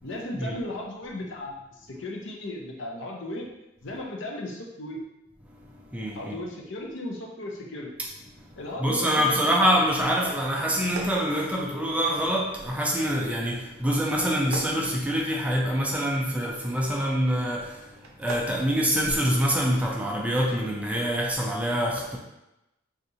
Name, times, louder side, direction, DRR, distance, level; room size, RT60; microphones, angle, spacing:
voice 1, 0.0-3.5 3.8-5.0 6.1-7.9 8.6-9.5, left 1 dB, 65° left, 0.6 m, -36 dB
voice 2, 5.5-6.4 8.3-22.2, equal, 5° right, 0.4 m, -26 dB
sound 1, 10.7-12.1 14.2-15.8 17.9-18.6, right 3 dB, 90° right, 0.5 m, -40 dB
4.1 x 2.5 x 2.7 m
head